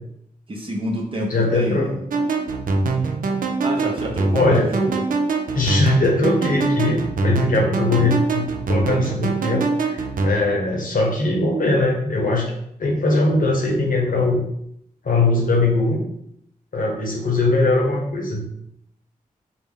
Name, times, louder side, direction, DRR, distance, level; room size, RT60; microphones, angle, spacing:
voice 1, 0.5-2.0 3.6-5.0 7.5-7.7, equal, 35° right, -1 dB, 0.8 m, -27 dB
voice 2, 1.3-1.9 4.3-4.7 5.5-12.5 12.8-14.4 15.0-16.0 16.7-18.4, left 2 dB, 65° left, 0 dB, 1.0 m, -20 dB
sound 1, 2.1-10.3, right 3 dB, 65° right, 0.5 m, -23 dB
4.1 x 2.1 x 3.6 m, 0.74 s
cardioid pair, 50°, 15 cm